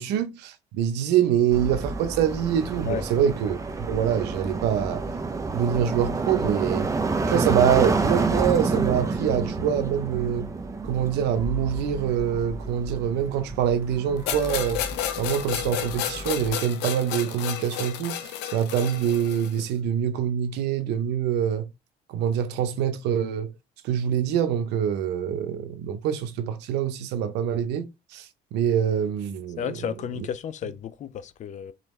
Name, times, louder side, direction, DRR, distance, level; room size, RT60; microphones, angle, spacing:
voice 1, 0.0-5.0 5.5-6.9 7.3-10.5 10.8-14.8 15.2-21.7 22.1-23.5 23.8-27.9 28.1-28.3 28.5-29.7, right 9 dB, 90° right, 0.8 m, -25 dB
sound 1, 1.5-16.5, right 3 dB, 20° right, 0.7 m, -29 dB
sound 2, 14.3-19.6, left 11 dB, 85° left, 0.7 m, -31 dB
voice 2, 29.6-31.7, left 8 dB, 45° left, 0.5 m, -32 dB
3.9 x 3.8 x 3.2 m
cardioid pair, 110°, 17 cm